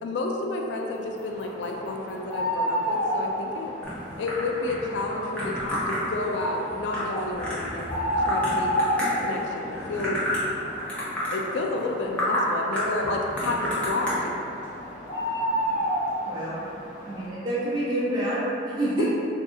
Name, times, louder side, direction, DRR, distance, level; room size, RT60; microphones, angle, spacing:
voice 1, 0.0-3.7 4.2-8.7 9.2-10.2 11.3-14.3 19.0-19.1, left 2 dB, 75° left, 1 dB, 0.3 m, -30 dB
sound 1, 1.0-17.3, equal, 40° left, 0.7 m, -31 dB
sound 2, 3.8-9.4 9.7-10.5 10.8-11.4 11.8-11.9 12.2-12.4 12.7-14.1, equal, 5° left, 0.6 m, -30 dB
voice 2, 16.3-16.6 17.0-19.1, right 1 dB, 20° right, -10 dB, 0.8 m, -27 dB
2.7 x 2.4 x 3.6 m, 2.8 s
head